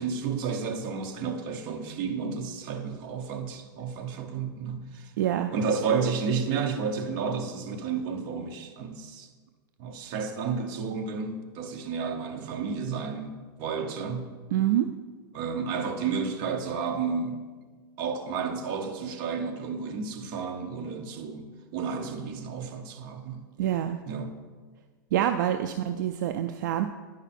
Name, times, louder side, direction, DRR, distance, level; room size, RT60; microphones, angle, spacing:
voice 1, 0.0-5.1 5.5-9.3 9.8-14.4 15.3-17.5 18.0-21.5 21.7-23.4 24.1-24.3, right 5 dB, 40° right, 0.9 m, -31 dB
voice 2, 5.2-5.5 14.5-14.9 23.6-24.0 25.1-26.8, right 11 dB, 65° right, 0.4 m, -26 dB
10.0 x 4.9 x 4.2 m
supercardioid pair, 155°, 11 cm